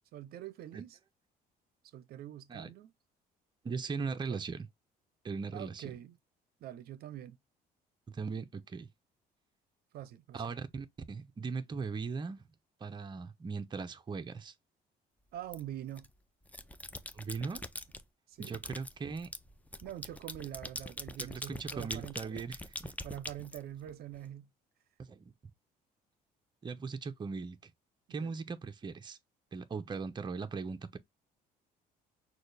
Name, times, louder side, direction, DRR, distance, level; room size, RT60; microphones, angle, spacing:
voice 1, 0.1-1.0 1.9-2.9 4.1-4.4 5.5-6.1 6.6-7.4 9.9-10.4 15.3-16.1 18.3-18.5 19.8-22.4 23.0-24.5 28.1-28.3, right 12 dB, 70° right, 0.6 m, -45 dB
voice 2, 3.6-4.7 5.2-5.9 8.1-8.9 10.3-12.4 12.8-14.5 17.1-17.6 18.4-19.3 21.2-22.9 25.0-25.3 26.6-27.7 28.1-29.2 29.5-31.0, right 5 dB, 25° right, 0.7 m, -39 dB
sound 1, 15.5-16.1 16.5-18.0 18.4-24.2, left 2 dB, 10° left, 0.5 m, -44 dB
6.2 x 2.4 x 3.3 m
cardioid pair, 110°, 17 cm